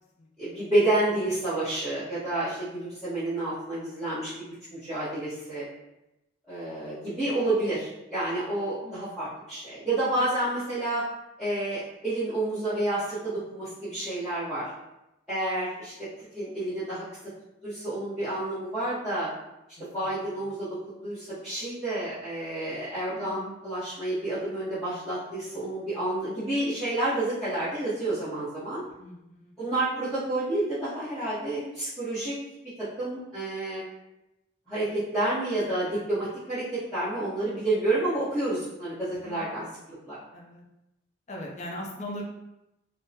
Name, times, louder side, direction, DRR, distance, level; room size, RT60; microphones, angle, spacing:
voice 1, 0.4-4.5 4.7-5.6 6.5-11.0 11.4-14.7 15.3-15.9 16.3-17.0 17.6-19.3 19.8-28.8 29.6-32.4 32.8-33.8 34.7-39.6 40.1-40.2, right 2 dB, ahead, -17 dB, 0.9 m, -29 dB
voice 2, 8.8-9.2 19.8-20.2 23.1-23.5 29.0-29.5 39.2-39.7 40.3-40.6 41.3-42.2, left 1 dB, 35° left, -1 dB, 0.5 m, -41 dB
3.6 x 2.0 x 2.7 m, 0.91 s
head